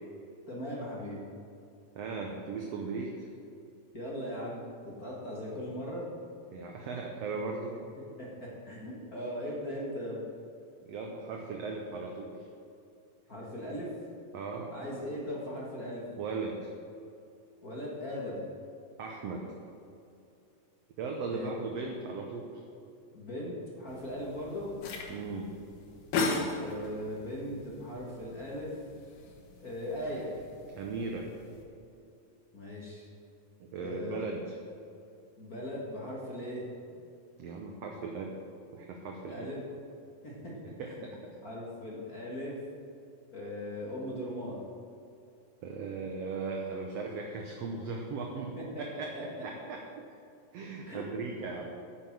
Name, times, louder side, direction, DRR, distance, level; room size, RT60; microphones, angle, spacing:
voice 1, 0.5-1.2 3.9-6.1 8.2-10.2 13.3-13.9 14.7-16.0 17.6-18.5 21.2-21.5 23.1-24.7 26.5-28.7 29.6-30.3 32.5-33.1 33.7-34.3 35.4-36.6 39.2-39.6 40.2-40.5 40.9-41.0 41.4-42.6 43.3-44.6 48.6-49.2 50.8-51.0, equal, 35° left, -5 dB, 1.5 m, -39 dB
voice 2, 1.9-3.3 6.5-7.8 10.8-12.5 14.3-14.7 16.1-16.7 19.0-19.5 21.0-22.5 25.1-25.6 30.8-31.3 33.6-34.6 37.4-38.4 38.7-39.5 40.8-41.2 45.6-50.2 50.5-51.7, right 4 dB, 70° right, 1 dB, 1.6 m, -38 dB
sound 1, 23.9-31.6, left 3 dB, 75° left, 2.9 m, -38 dB
10.0 x 7.6 x 7.3 m, 2.7 s
omnidirectional pair, 3.9 m